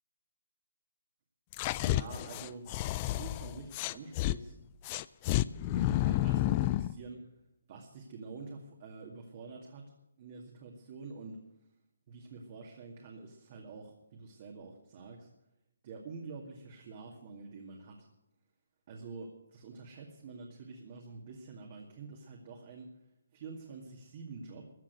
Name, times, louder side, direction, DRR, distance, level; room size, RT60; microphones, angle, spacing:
sound 1, 1.5-4.4 4.8-6.9, left 16 dB, 25° left, 0.4 m, -30 dB
voice 1, 1.8-2.7 3.0-4.6 5.7-7.2 7.7-9.9 10.2-11.4 12.1-15.3 15.8-18.1 18.9-22.9 23.3-24.7, right 4 dB, 40° right, 0 dB, 2.2 m, -47 dB
14.5 x 7.5 x 9.4 m, 0.85 s
figure-of-eight pair, 150°, 0 cm